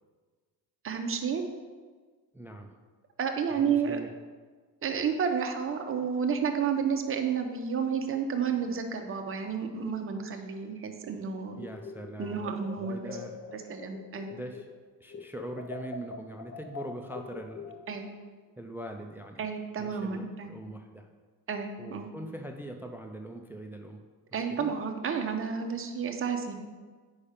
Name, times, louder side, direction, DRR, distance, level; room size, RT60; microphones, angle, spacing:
voice 1, 0.8-1.4 3.2-4.0 4.8-11.6 12.2-13.1 13.5-14.3 17.9-18.1 19.4-20.5 21.5-22.1 24.3-26.5, right 6 dB, 35° right, 5 dB, 0.7 m, -31 dB
voice 2, 2.3-2.7 3.6-4.1 11.6-13.4 14.3-14.7 15.0-17.7 18.6-19.4 19.8-21.1 21.8-24.0 24.5-24.7, right 1 dB, 5° right, 5 dB, 0.3 m, -42 dB
sound 1, 11.6-14.8 15.1-18.1, left 5 dB, 45° left, 0.6 m, -44 dB
8.5 x 5.5 x 5.0 m, 1.5 s
cardioid pair, 150°, 37 cm